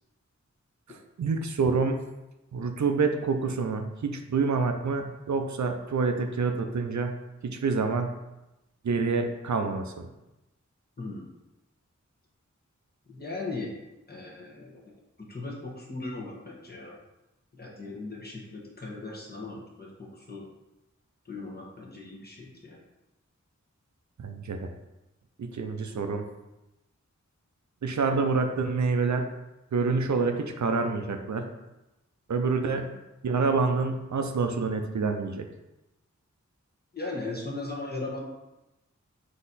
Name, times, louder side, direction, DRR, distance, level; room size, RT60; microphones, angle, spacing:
voice 1, 1.2-2.0 2.5-7.1 7.4-8.1 8.8-10.1 24.2-24.7 25.4-26.2 27.8-29.3 29.7-31.5 32.3-33.0 33.2-35.4, right 4 dB, 70° right, 5 dB, 0.5 m, -27 dB
voice 2, 11.0-11.3 13.1-13.7 14.1-17.0 17.5-20.4 21.2-22.8 32.8-32.9 36.9-38.2, left 2 dB, 30° left, -4 dB, 1.1 m, -38 dB
4.0 x 2.8 x 4.0 m, 0.97 s
wide cardioid pair, 65°, 30 cm